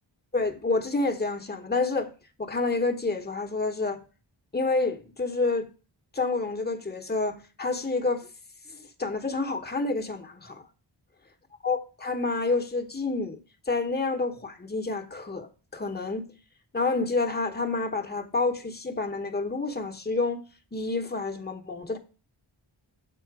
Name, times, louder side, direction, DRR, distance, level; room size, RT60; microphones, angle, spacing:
voice 1, 0.3-2.1 2.4-4.0 4.5-5.7 6.1-8.3 8.7-10.6 11.6-13.4 13.7-16.3 16.7-20.4 20.7-22.0, left 3 dB, 20° left, 1.0 m, -28 dB
7.7 x 4.3 x 4.8 m
wide cardioid pair, 65°, 49 cm